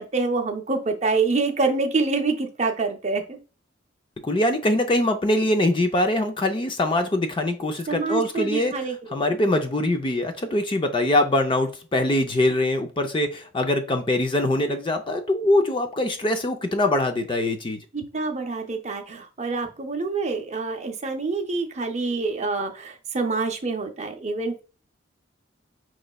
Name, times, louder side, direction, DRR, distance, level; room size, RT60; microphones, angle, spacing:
voice 1, 0.0-3.4 7.9-9.2 17.9-24.6, right 3 dB, 35° right, 0.6 m, -26 dB
voice 2, 4.2-8.8 9.1-17.8, left 1 dB, 25° left, 0.5 m, -23 dB
5.1 x 3.1 x 2.2 m
head